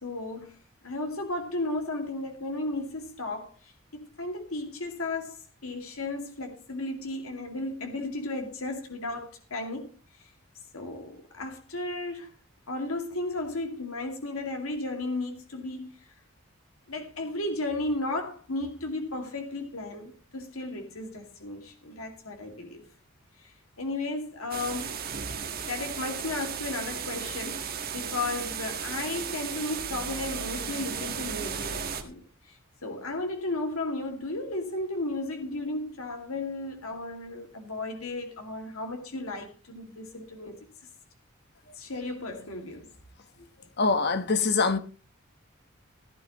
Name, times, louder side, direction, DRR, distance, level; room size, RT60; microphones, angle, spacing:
voice 1, 0.0-9.9 10.2-10.3 10.7-12.3 12.7-16.1 16.9-22.8 23.4-25.0 25.7-40.6 41.7-42.9, left 2 dB, 85° left, 2.4 m, -34 dB
sound 1, 24.5-32.0, right 7 dB, 45° right, 1.6 m, -35 dB
voice 2, 43.8-44.8, left 4 dB, 50° left, 1.2 m, -24 dB
16.0 x 12.5 x 3.1 m
head